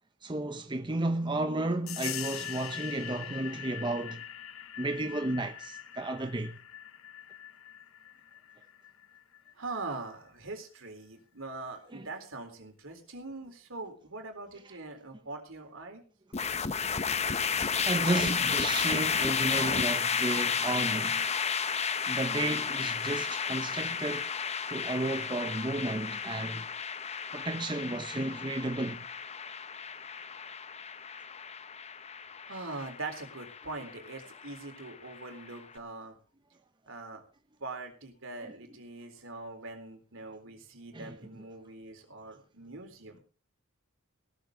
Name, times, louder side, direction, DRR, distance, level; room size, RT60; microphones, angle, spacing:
voice 1, 0.2-4.2 4.8-6.6 11.9-12.1 17.8-21.3 22.1-24.3 24.7-26.7 27.3-29.1 38.4-38.5 40.9-41.2, right 2 dB, 20° right, 0.8 m, -33 dB
sound 1, 1.9-10.2, left 11 dB, 70° left, 1.1 m, -43 dB
voice 2, 9.6-16.0 32.5-36.2 36.9-37.2 37.6-43.2, right 3 dB, 65° right, 4.0 m, -42 dB
sound 2, 16.3-35.6, left 6 dB, 30° left, 0.8 m, -32 dB
17.5 x 13.5 x 3.8 m
head